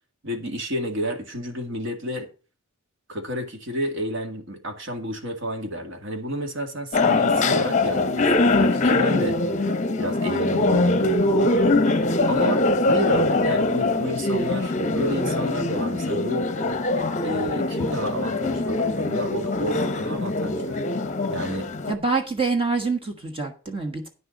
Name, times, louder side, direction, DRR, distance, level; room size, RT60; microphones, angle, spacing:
voice 1, 0.2-2.3 3.1-9.4 10.0-11.5 12.3-16.5 17.2-20.8 21.3-21.7, equal, 65° right, 2.1 m, -31 dB
sound 1, 6.9-21.9, left 2 dB, 35° left, 0.8 m, -22 dB
voice 2, 21.9-24.1, right 4 dB, 25° right, 1.4 m, -26 dB
9.6 x 6.7 x 5.2 m
head